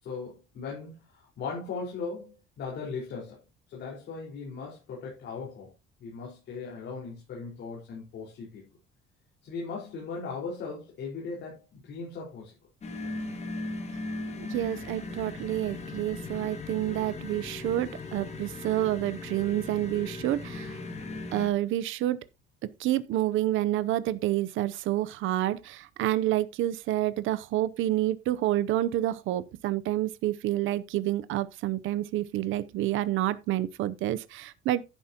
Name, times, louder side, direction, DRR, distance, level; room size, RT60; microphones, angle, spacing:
voice 1, 0.0-3.4 3.7-5.7 6.0-8.6 9.4-12.5, left 4 dB, 55° left, 4.6 m, -38 dB
sound 1, 12.8-21.5, left 2 dB, 30° left, 2.1 m, -38 dB
voice 2, 14.4-20.8 21.3-22.2 22.8-34.8, right 14 dB, 70° right, 0.7 m, -28 dB
11.0 x 10.0 x 2.9 m
cardioid pair, 170°, 21 cm